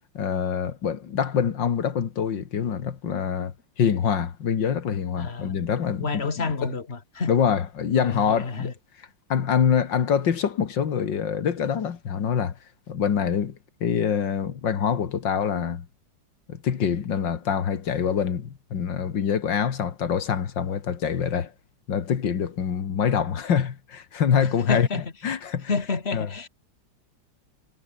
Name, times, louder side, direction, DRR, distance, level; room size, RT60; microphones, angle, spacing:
voice 1, 0.1-6.7 7.3-8.7 9.3-12.5 12.9-15.8 16.5-21.5 21.9-24.9 25.2-25.7 26.1-26.3, left 7 dB, 85° left, 2.4 m, -25 dB
voice 2, 5.2-5.6 6.0-7.3 8.0-8.7 24.4-25.0 25.7-26.5, left 4 dB, 35° left, 2.7 m, -29 dB
omnidirectional pair, 1.9 m